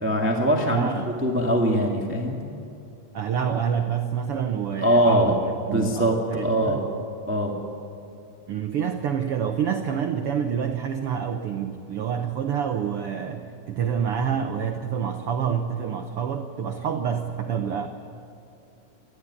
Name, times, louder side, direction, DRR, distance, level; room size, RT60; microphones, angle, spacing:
voice 1, 0.0-0.9 1.2-2.4 4.8-5.4 5.7-6.8 7.3-7.6, equal, 5° right, 0 dB, 1.2 m, -22 dB
voice 2, 0.5-1.1 3.1-5.3 5.6-6.8 8.5-17.9, right 7 dB, 75° right, 6 dB, 1.3 m, -27 dB
26.5 x 11.0 x 9.7 m, 2.6 s
omnidirectional pair, 3.8 m